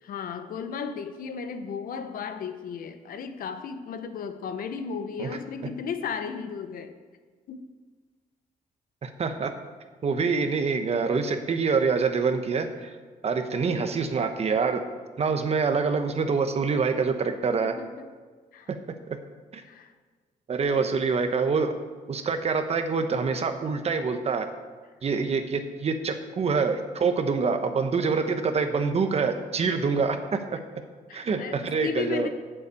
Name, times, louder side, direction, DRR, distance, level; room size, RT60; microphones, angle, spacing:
voice 1, 0.0-7.0 7.5-7.7 17.6-18.1 18.5-18.7 19.6-19.9 20.7-20.8 31.1-32.3, left 6 dB, 75° left, 8 dB, 1.0 m, -35 dB
voice 2, 9.0-9.5 10.0-12.9 13.2-14.8 15.2-17.7 19.5-19.6 20.5-21.8 22.1-24.5 25.0-30.6 31.1-32.3, right 5 dB, 45° right, 7 dB, 1.1 m, -26 dB
8.0 x 7.4 x 8.2 m, 1.5 s
cardioid pair, 110°, 15 cm